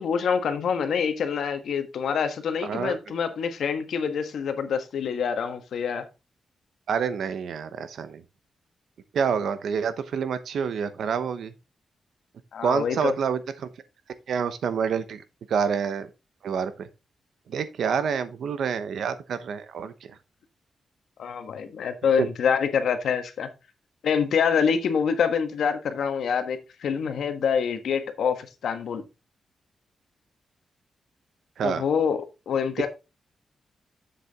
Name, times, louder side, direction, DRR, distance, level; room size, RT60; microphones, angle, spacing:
voice 1, 0.0-6.1 12.5-13.1 21.2-23.5 24.0-29.0 31.6-32.9, left 6 dB, 70° left, 1.3 m, -26 dB
voice 2, 2.6-3.0 6.9-8.2 9.1-11.5 12.6-13.7 14.3-15.2 15.5-16.1 16.4-16.9 17.5-19.9 22.2-22.3 31.6-31.8, right 6 dB, 70° right, 0.9 m, -27 dB
7.5 x 6.8 x 3.6 m
wide cardioid pair, 175°, 0 cm